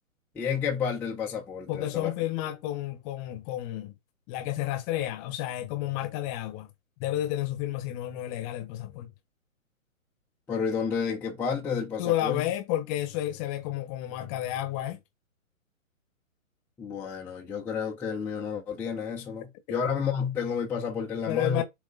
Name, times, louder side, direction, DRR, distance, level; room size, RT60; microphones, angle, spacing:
voice 1, 0.3-2.1 10.5-12.4 16.8-21.6, left 6 dB, 5° left, 0.8 m, -30 dB
voice 2, 1.7-3.9 4.3-6.7 7.0-9.1 12.0-15.0 21.3-21.6, left 13 dB, 20° left, 1.2 m, -31 dB
8.0 x 3.2 x 5.3 m
figure-of-eight pair, 130°, 42 cm